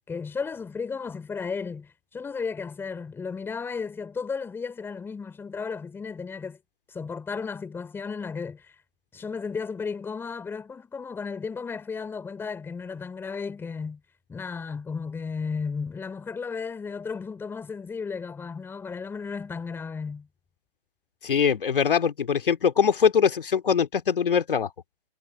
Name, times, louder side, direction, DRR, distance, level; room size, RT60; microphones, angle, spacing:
voice 1, 0.1-6.6 6.9-8.7 9.1-14.0 14.3-20.3, left 5 dB, 5° left, 3.6 m, -34 dB
voice 2, 21.2-24.7, left 7 dB, 60° left, 2.6 m, -22 dB
figure-of-eight pair, 135°, 30 cm